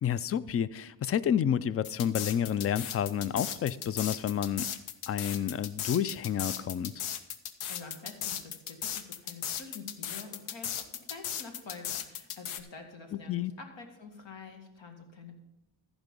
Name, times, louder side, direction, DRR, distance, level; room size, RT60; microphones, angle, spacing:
voice 1, 0.0-4.7 5.1-6.9 13.3-13.5, left 9 dB, 30° left, 0.4 m, -30 dB
sound 1, 1.8-12.6, left 9 dB, 80° left, 0.8 m, -36 dB
voice 2, 7.7-15.4, left 4 dB, 65° left, 2.1 m, -47 dB
14.5 x 5.0 x 5.3 m
cardioid pair, 80°, 49 cm